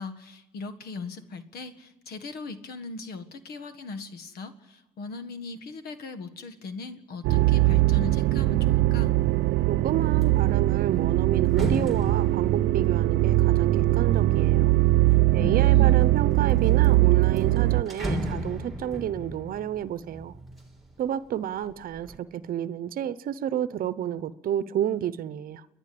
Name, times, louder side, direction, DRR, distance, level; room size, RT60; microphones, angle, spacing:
voice 1, 0.0-9.2 15.4-16.1, left 3 dB, 65° left, 1.8 m, -39 dB
sound 1, 7.2-17.8, right 17 dB, 80° right, 0.6 m, -21 dB
sound 2, 9.1-9.5 9.9-15.2 15.8-16.5 16.8-16.9 17.2-21.1 21.5-22.2, right 1 dB, ahead, 3.5 m, -36 dB
voice 2, 9.7-14.7 15.3-20.4 21.0-25.7, right 10 dB, 60° right, 0.9 m, -30 dB
29.5 x 11.0 x 8.6 m
cardioid pair, 110°, 17 cm